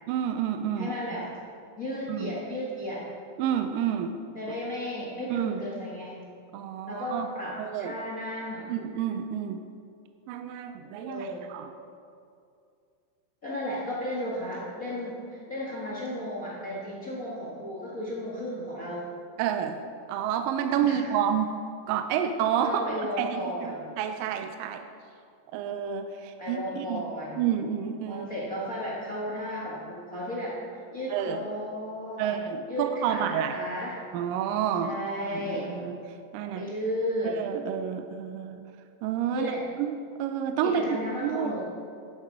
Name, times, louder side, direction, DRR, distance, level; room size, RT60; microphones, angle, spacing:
voice 1, 0.1-0.9 2.1-2.3 3.4-4.2 5.3-5.6 6.5-7.3 7.6-8.0 8.7-9.6 10.3-11.7 19.4-19.8 20.1-21.6 21.9-22.8 23.2-24.8 25.5-27.0 27.4-28.3 31.1-31.4 32.2-33.6 34.1-35.0 35.3-36.0 36.3-36.7 37.4-38.6 39.0-39.5 39.8-41.5, right 9 dB, 80° right, 7 dB, 2.1 m, -29 dB
voice 2, 0.8-1.3 1.8-3.1 4.3-6.2 6.9-8.7 10.8-11.5 13.4-19.1 20.8-21.0 22.6-23.8 26.4-27.4 28.0-32.3 32.7-34.0 34.8-35.7 36.4-37.4 39.3-39.6 40.6-41.6, equal, 45° left, -4 dB, 1.0 m, -34 dB
11.5 x 10.5 x 4.8 m, 2.4 s
omnidirectional pair, 4.2 m